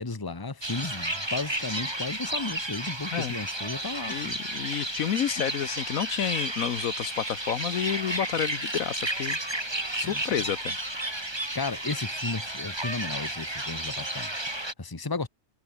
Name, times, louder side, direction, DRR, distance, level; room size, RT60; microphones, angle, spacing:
voice 1, 0.0-4.4 9.9-10.4 11.5-14.3 14.8-15.3, left 3 dB, 15° left, 1.3 m, -34 dB
sound 1, 0.6-14.7, right 1 dB, 15° right, 2.9 m, -32 dB
voice 2, 4.1-9.4 10.0-10.8, left 9 dB, 70° left, 1.3 m, -30 dB
omnidirectional pair, 1.6 m